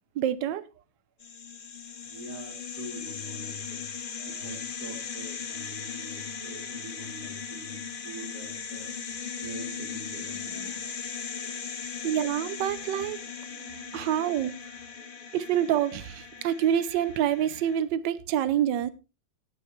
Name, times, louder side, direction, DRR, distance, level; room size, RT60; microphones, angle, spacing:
voice 1, 0.2-0.7 12.0-13.2 13.6-14.6 15.3-18.9, right 10 dB, 75° right, 1.4 m, -27 dB
sound 1, 1.2-17.8, left 6 dB, 40° left, 0.8 m, -38 dB
voice 2, 2.0-9.2 9.4-11.6 11.9-12.3 14.0-14.3 14.8-15.3 15.6-15.8 16.4-16.5, right 1 dB, 60° right, 2.7 m, -45 dB
17.0 x 9.5 x 3.2 m
omnidirectional pair, 2.0 m